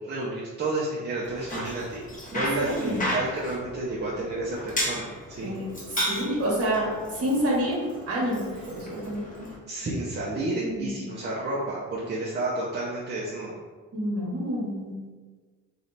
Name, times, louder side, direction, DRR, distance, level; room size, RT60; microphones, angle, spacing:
voice 1, 0.0-2.0 2.3-5.5 9.7-13.5, right 2 dB, 35° right, -6 dB, 0.8 m, -31 dB
Bicycle, 1.2-9.6, equal, 25° left, 1.4 m, -34 dB
voice 2, 2.3-3.0 5.4-7.8 8.1-9.5 10.6-11.0 13.9-15.0, equal, 50° right, -4 dB, 1.4 m, -29 dB
3.3 x 2.8 x 3.9 m, 1.4 s
cardioid pair, 90°, 30 cm